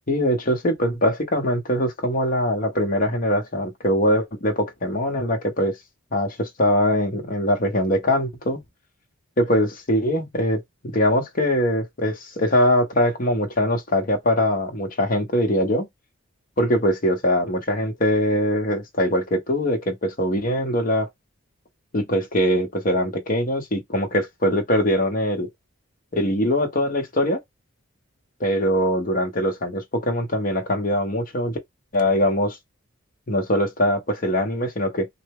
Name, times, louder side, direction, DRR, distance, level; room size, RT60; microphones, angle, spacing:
voice 1, 0.1-5.8 6.1-8.6 9.4-15.9 16.6-21.1 21.9-25.5 26.1-27.4 28.4-31.6 31.9-32.6 33.3-35.1, left 1 dB, 40° left, 0.9 m, -22 dB
3.2 x 2.1 x 3.5 m
head